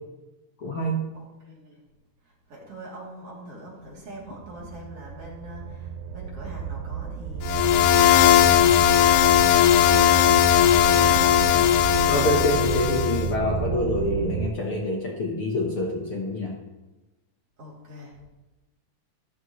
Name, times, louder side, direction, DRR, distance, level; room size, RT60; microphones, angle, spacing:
voice 1, 0.6-1.1 12.1-16.6, left 1 dB, 55° left, -1 dB, 1.8 m, -26 dB
voice 2, 1.1-1.8 2.5-10.3 10.7-11.7 17.6-18.2, equal, 45° right, -4 dB, 3.8 m, -42 dB
sound 1, 4.3-14.5, right 7 dB, 90° right, 2.2 m, -30 dB
sound 2, 7.4-13.3, left 12 dB, 85° left, 2.2 m, -18 dB
14.0 x 14.0 x 3.1 m, 1.1 s
omnidirectional pair, 3.7 m